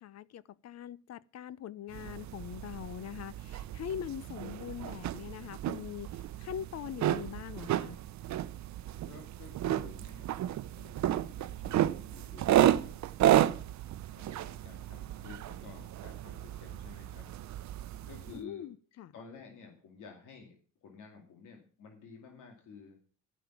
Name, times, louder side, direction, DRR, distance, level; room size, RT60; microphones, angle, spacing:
voice 1, 0.0-6.1 6.4-8.0 18.3-19.1, left 10 dB, 60° left, 0.6 m, -42 dB
sound 1, 1.9-18.4, right 12 dB, 65° right, 0.7 m, -32 dB
voice 2, 9.0-13.0 13.3-13.7 14.1-17.3 18.1-18.6 19.1-23.0, left 5 dB, 85° left, 2.3 m, -52 dB
12.0 x 5.9 x 7.1 m
cardioid pair, 90°, 30 cm